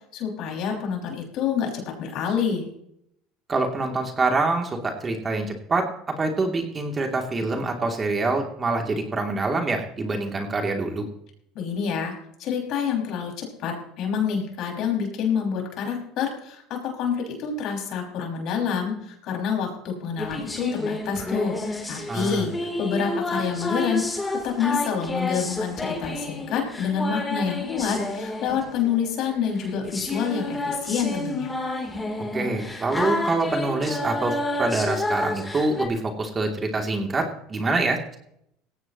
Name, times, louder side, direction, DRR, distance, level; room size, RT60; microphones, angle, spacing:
voice 1, 0.1-2.7 11.5-12.1 12.4-31.5, left 7 dB, 60° left, 1 dB, 5.7 m, -27 dB
voice 2, 3.5-11.1 22.1-22.5 32.3-38.2, right 3 dB, 25° right, 3 dB, 2.8 m, -25 dB
sound 1, 20.2-35.9, left 2 dB, 15° left, 3.2 m, -30 dB
18.5 x 16.0 x 3.0 m, 0.74 s
supercardioid pair, 105°, 0 cm